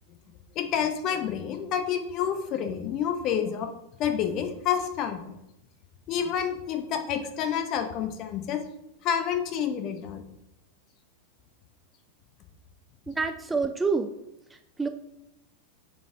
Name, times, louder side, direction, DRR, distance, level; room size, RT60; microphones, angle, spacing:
voice 1, 0.5-3.7 4.0-5.4 6.1-8.6 9.0-10.2, left 8 dB, 35° left, 7 dB, 0.8 m, -29 dB
voice 2, 13.1-14.1 14.5-14.9, right 4 dB, 10° right, 7 dB, 0.3 m, -28 dB
7.0 x 4.1 x 3.7 m, 0.85 s
figure-of-eight pair, 90°, 0 cm